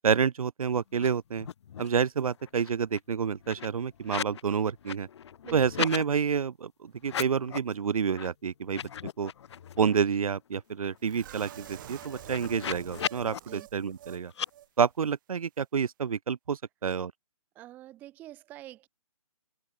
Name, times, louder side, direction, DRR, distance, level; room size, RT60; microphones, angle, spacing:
voice 1, 0.0-1.5 1.8-5.1 5.5-8.8 9.2-9.3 9.8-14.3 14.8-17.1, right 6 dB, 75° right, 0.5 m, -28 dB
sound 1, 0.9-1.1 1.3-2.0 2.3-4.4 4.7-6.0 7.0-7.7 8.1-8.3 8.6-10.0 10.4-10.5 10.7-13.4 14.3-14.5, left 9 dB, 50° left, 0.5 m, -38 dB
sound 2, 11.0-14.2 14.5-14.7 15.0-15.1, right 13 dB, 35° right, 1.0 m, -47 dB
voice 2, 17.6-18.9, right 14 dB, 10° right, 0.4 m, -46 dB
open air
figure-of-eight pair, 140°, 18 cm